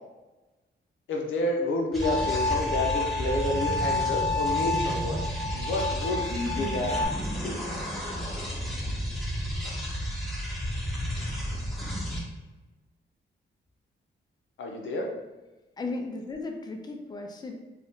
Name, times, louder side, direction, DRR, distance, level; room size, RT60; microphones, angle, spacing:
voice 1, 1.1-5.2 5.5-6.9 7.4-7.8 9.7-9.8 11.1-11.3 14.6-15.1, left 2 dB, 80° left, 1 dB, 0.6 m, -30 dB
sound 1, 1.9-12.2, equal, ahead, 0.8 m, -32 dB
Bowed string instrument, 2.0-7.0, left 3 dB, 65° right, 0.6 m, -30 dB
voice 2, 6.3-6.8 15.8-17.5, left 2 dB, 20° left, 2 dB, 0.4 m, -35 dB
2.6 x 2.3 x 3.5 m, 1.1 s
wide cardioid pair, 135°, 20 cm